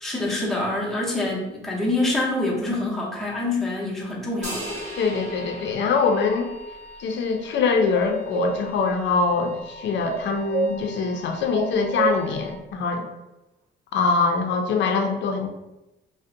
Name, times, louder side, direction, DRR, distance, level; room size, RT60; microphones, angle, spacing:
voice 1, 0.0-4.8, left 2 dB, ahead, -5 dB, 0.6 m, -26 dB
Wind instrument woodwind instrument, 4.4-12.6, equal, 40° left, 0.9 m, -44 dB
sound 1, 4.4-7.0, equal, 35° right, 1.0 m, -37 dB
voice 2, 5.0-6.5 7.0-13.1 13.9-15.5, left 4 dB, 65° left, 4 dB, 0.5 m, -23 dB
sound 2, 7.9-8.5 10.0-10.7 11.5-12.2, right 4 dB, 55° right, 0.4 m, -25 dB
2.4 x 2.1 x 2.5 m, 0.97 s
cardioid pair, 90°, 20 cm